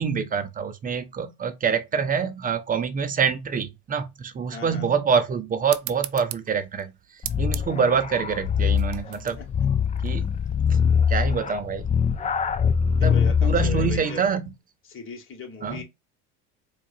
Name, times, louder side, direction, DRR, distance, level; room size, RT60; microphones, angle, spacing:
voice 1, 0.0-6.9 7.4-9.4 10.0-10.3 11.1-12.0 13.0-14.4 15.6-15.8, right 6 dB, 25° right, 0.6 m, -26 dB
voice 2, 4.5-4.9 9.4-9.5 13.0-14.3 14.8-15.8, left 4 dB, 35° left, 1.7 m, -37 dB
sound 1, 5.7-10.8, right 16 dB, 70° right, 0.5 m, -39 dB
sound 2, 7.2-14.1, left 7 dB, 20° left, 0.5 m, -23 dB
4.5 x 2.5 x 2.6 m
supercardioid pair, 100°, 35 cm